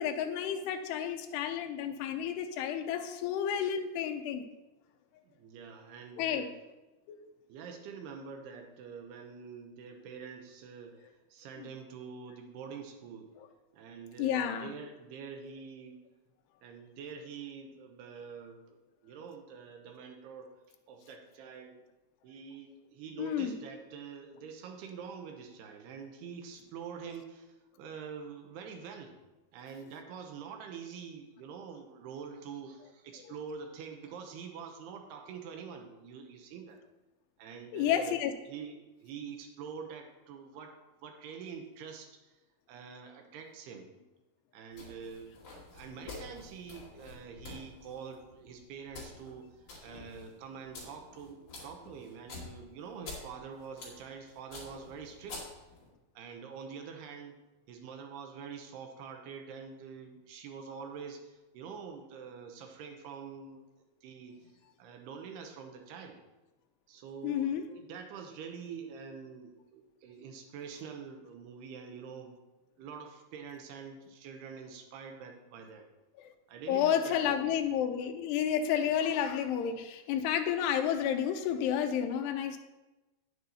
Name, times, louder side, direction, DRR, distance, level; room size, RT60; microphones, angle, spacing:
voice 1, 0.0-4.5 6.2-6.5 7.1-7.2 11.6-11.7 14.2-14.7 23.2-23.5 33.3-33.4 37.7-38.3 67.2-67.7 76.2-76.3 76.7-82.6, left 9 dB, 85° left, 5 dB, 2.7 m, -31 dB
voice 2, 5.3-6.5 7.5-13.3 13.7-16.0 16.6-20.5 20.9-21.8 22.2-29.2 29.5-36.8 37.4-38.2 38.5-42.3 42.7-43.9 44.5-45.3 45.7-55.4 56.2-57.4 57.7-63.7 64.0-64.4 64.8-66.2 66.9-72.4 72.8-75.9 76.5-77.6, right 6 dB, 80° right, 4 dB, 2.7 m, -46 dB
sound 1, 44.7-55.9, left 3 dB, 40° left, 3.2 m, -49 dB
9.5 x 7.9 x 4.1 m, 1.1 s
omnidirectional pair, 4.9 m